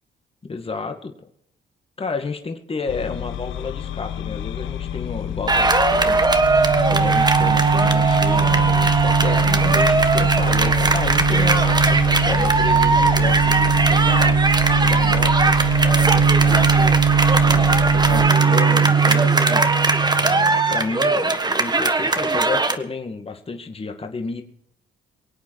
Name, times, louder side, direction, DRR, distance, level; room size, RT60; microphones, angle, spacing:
voice 1, 0.5-1.1 2.0-6.6 6.9-14.4 14.8-17.0 17.4-19.7 20.2-24.4, left 4 dB, 30° left, 5 dB, 2.0 m, -31 dB
sound 1, 2.9-18.3, left 10 dB, 80° left, 1.1 m, -29 dB
sound 2, 5.5-22.8, right 3 dB, 20° right, 1.4 m, -20 dB
sound 3, 6.4-20.9, right 7 dB, 45° right, 0.9 m, -20 dB
24.0 x 8.5 x 4.8 m, 0.73 s
cardioid pair, 90°, 20 cm